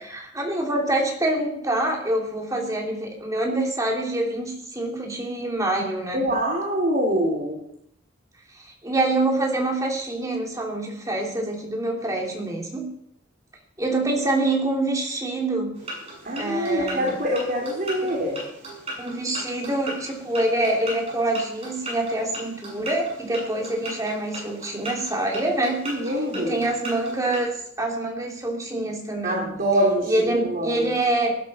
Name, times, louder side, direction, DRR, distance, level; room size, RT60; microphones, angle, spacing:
voice 1, 0.1-6.3 8.5-12.9 13.8-15.7 16.4-17.2 18.0-18.1 19.0-25.8 26.3-29.5 30.0-31.3, right 2 dB, 15° right, 0 dB, 3.2 m, -26 dB
voice 2, 6.1-7.6 16.2-18.4 25.8-26.6 29.2-30.9, equal, 45° right, -3 dB, 3.2 m, -24 dB
sound 1, 15.7-27.5, right 1 dB, 30° right, 7.7 m, -38 dB
19.0 x 12.0 x 4.4 m, 0.73 s
head